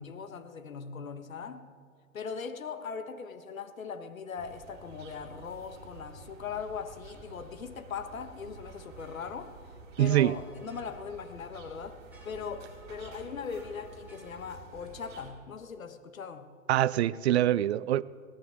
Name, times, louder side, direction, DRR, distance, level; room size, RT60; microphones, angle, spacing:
voice 1, 0.0-1.7 2.1-9.6 10.0-16.5, left 6 dB, 80° left, 1.5 m, -40 dB
sound 1, 4.4-15.3, right 4 dB, 25° right, 4.3 m, -50 dB
sound 2, 8.5-14.6, equal, 5° right, 2.7 m, -57 dB
voice 2, 10.0-10.3 16.7-18.0, right 13 dB, 55° right, 0.6 m, -24 dB
22.5 x 17.5 x 3.6 m
hypercardioid pair, 130°, 40 cm